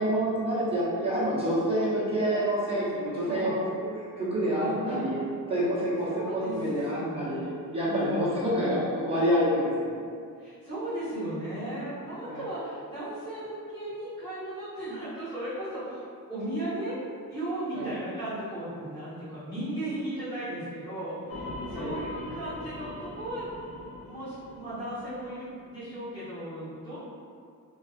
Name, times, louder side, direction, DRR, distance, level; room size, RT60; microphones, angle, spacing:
voice 1, 0.0-3.6 4.2-5.2 5.5-10.0 12.3-12.4 17.7-17.9 21.7-21.9, equal, 15° right, -10 dB, 0.7 m, -27 dB
voice 2, 4.6-5.1 6.1-6.5 6.9-7.5 7.8-8.8 10.4-16.0 16.3-16.9 17.3-23.5 23.8-27.0, right 1 dB, 15° left, -15 dB, 1.2 m, -36 dB
sound 1, 21.3-25.7, left 1 dB, 80° left, 0.5 m, -41 dB
2.5 x 2.4 x 2.3 m, 2.3 s
wide cardioid pair, 165°, 34 cm